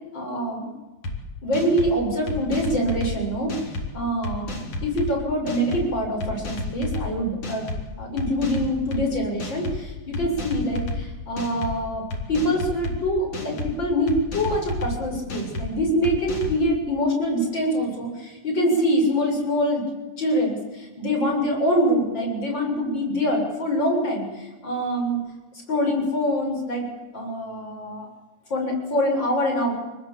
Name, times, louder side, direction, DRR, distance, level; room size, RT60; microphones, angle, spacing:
voice 1, 0.1-0.7 1.4-7.7 8.0-19.8 20.2-25.2 25.5-26.9 27.1-28.1 28.5-29.7, equal, 35° left, 1 dB, 7.6 m, -25 dB
sound 1, 1.0-1.2 1.5-1.9 2.3-3.1 3.5-3.9 4.2-5.1 5.5-5.8 6.2-7.1 7.4-7.8 8.2-9.0 9.4-9.8 10.1-11.0 11.4-11.7 12.1-13.0 13.3-13.7 14.1-14.9 15.3-15.7 16.0-16.6, left 2 dB, 50° left, 4.9 m, -30 dB
28.0 x 19.5 x 8.7 m, 1.1 s
omnidirectional pair, 3.4 m